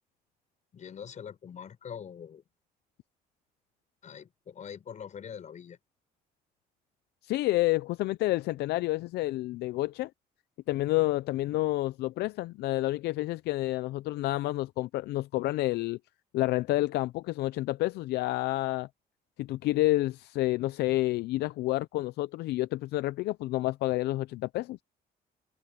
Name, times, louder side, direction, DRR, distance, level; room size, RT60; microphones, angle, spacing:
voice 1, 0.7-2.4 4.0-5.8, left 8 dB, 45° left, 7.2 m, -43 dB
voice 2, 7.2-10.1 10.7-16.0 16.3-18.9 19.4-24.8, left 17 dB, 75° left, 0.5 m, -29 dB
cardioid pair, 110°, 17 cm